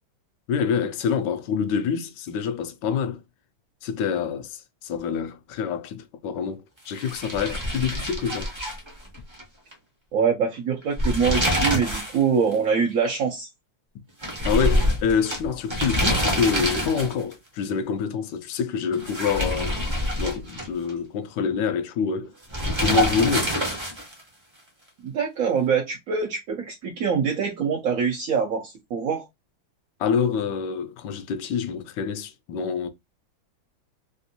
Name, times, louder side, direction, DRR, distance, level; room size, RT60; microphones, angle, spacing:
voice 1, 0.5-3.2 3.8-8.5 14.4-22.3 22.8-23.7 30.0-32.9, left 6 dB, 75° left, 1.1 m, -26 dB
sound 1, 6.9-9.4 9.7-9.8 10.8-12.2 12.5-12.6 14.2-17.3 18.9-20.9 22.5-24.2, equal, 25° right, 0.5 m, -26 dB
voice 2, 10.1-13.5 25.0-29.2, right 6 dB, 70° right, 0.8 m, -24 dB
3.5 x 2.5 x 2.7 m
omnidirectional pair, 2.1 m